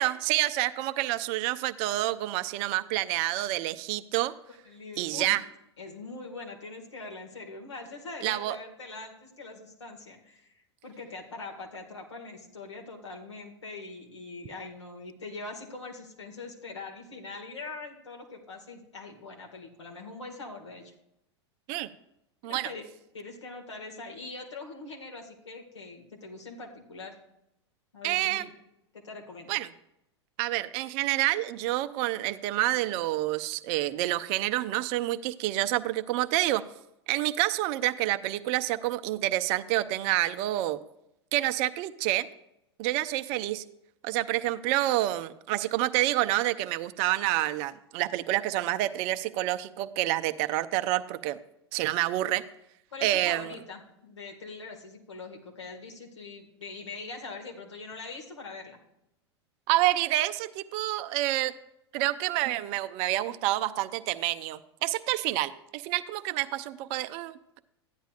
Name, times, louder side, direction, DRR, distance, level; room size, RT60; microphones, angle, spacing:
voice 1, 0.0-4.3 5.0-5.4 8.2-8.6 21.7-21.9 22.4-22.7 28.0-28.5 29.5-29.7 30.4-36.6 37.1-40.8 41.3-42.3 42.8-43.6 44.0-51.4 51.7-52.4 53.0-53.5 59.7-61.5 61.9-67.6, right 16 dB, 45° right, 12 dB, 0.5 m, -28 dB
voice 2, 4.7-5.3 5.8-20.9 22.4-22.9 23.1-27.2 27.9-28.5 28.9-29.6 52.9-58.8, left 3 dB, 80° left, 1 dB, 2.0 m, -42 dB
14.5 x 10.0 x 2.5 m, 0.83 s
figure-of-eight pair, 90°, 15 cm